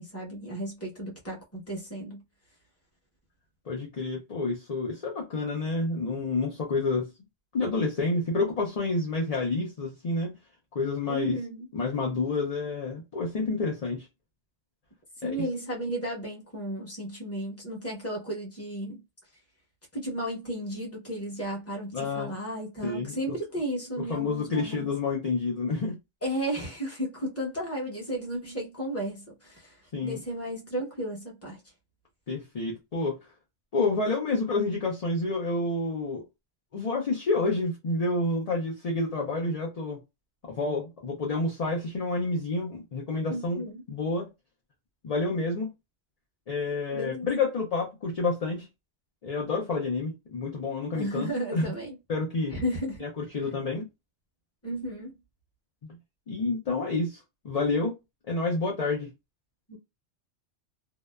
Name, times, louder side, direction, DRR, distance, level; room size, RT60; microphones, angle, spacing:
voice 1, 0.0-2.2 11.1-11.7 15.2-19.0 19.9-24.9 26.2-31.6 43.3-43.8 46.9-47.3 50.9-52.0 52.5-53.0 54.6-55.1 59.7-59.8, right 1 dB, 15° left, 0.8 m, -34 dB
voice 2, 3.7-7.1 7.5-10.3 10.7-11.4 11.7-14.1 15.2-15.4 21.9-22.3 22.8-23.3 24.1-26.0 29.9-30.2 32.3-33.2 33.7-36.2 36.7-40.0 40.6-43.6 43.9-44.3 45.0-45.7 46.5-48.7 49.2-51.7 52.1-52.5 53.0-53.8 55.8-56.0 56.3-57.2 57.4-58.0 58.3-59.1, left 3 dB, 50° left, 0.5 m, -29 dB
2.8 x 2.1 x 2.2 m
omnidirectional pair, 1.3 m